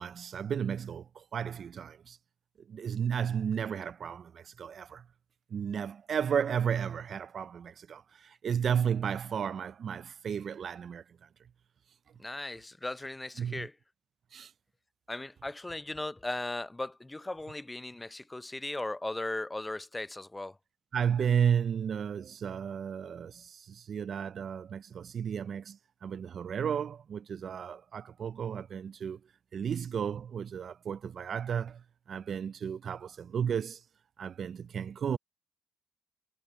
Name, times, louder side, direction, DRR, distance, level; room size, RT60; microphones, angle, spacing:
voice 1, 0.0-2.2 2.6-5.1 5.5-11.3 13.4-13.7 14.3-14.5 20.9-29.2 29.5-33.8 34.2-35.2, right 8 dB, 55° right, 0.4 m, -33 dB
voice 2, 12.2-13.7 15.1-20.6, left 2 dB, 15° left, 0.5 m, -37 dB
cardioid pair, 90°, 0 cm